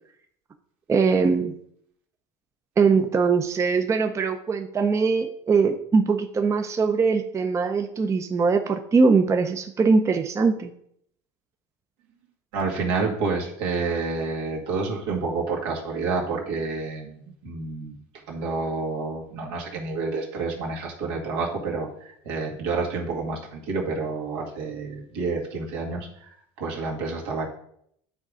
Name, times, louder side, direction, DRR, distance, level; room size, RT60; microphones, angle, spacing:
voice 1, 0.9-1.5 2.8-10.7, right 4 dB, 20° right, 6 dB, 0.6 m, -21 dB
voice 2, 12.5-18.0 18.3-27.5, right 4 dB, 85° right, -1 dB, 2.1 m, -29 dB
9.1 x 4.0 x 4.9 m, 0.70 s
supercardioid pair, 115°, 13 cm